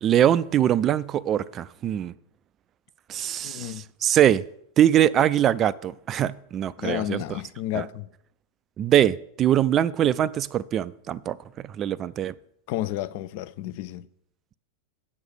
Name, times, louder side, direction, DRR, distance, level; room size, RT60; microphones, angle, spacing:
voice 1, 0.0-2.1 3.1-3.7 4.0-4.4 4.8-7.2 7.7-7.8 8.8-12.3, right 11 dB, 30° right, 0.3 m, -22 dB
voice 2, 3.4-3.8 6.8-8.1 12.7-14.1, left 14 dB, 45° left, 0.4 m, -31 dB
8.8 x 6.4 x 6.5 m
figure-of-eight pair, 90°, 0 cm